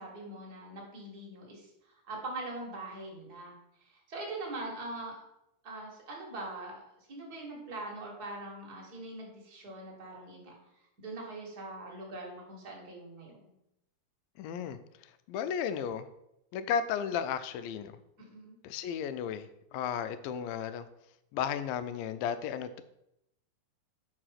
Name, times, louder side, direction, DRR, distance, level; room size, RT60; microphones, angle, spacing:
voice 1, 0.0-3.5 3.8-5.2 5.6-10.5 11.0-13.5 18.2-18.5, right 2 dB, 40° right, -1 dB, 1.5 m, -42 dB
voice 2, 14.4-16.1 16.5-17.9 18.6-20.9 21.3-22.8, left 8 dB, 85° left, 12 dB, 2.3 m, -34 dB
5.4 x 4.8 x 5.7 m, 0.82 s
omnidirectional pair, 4.1 m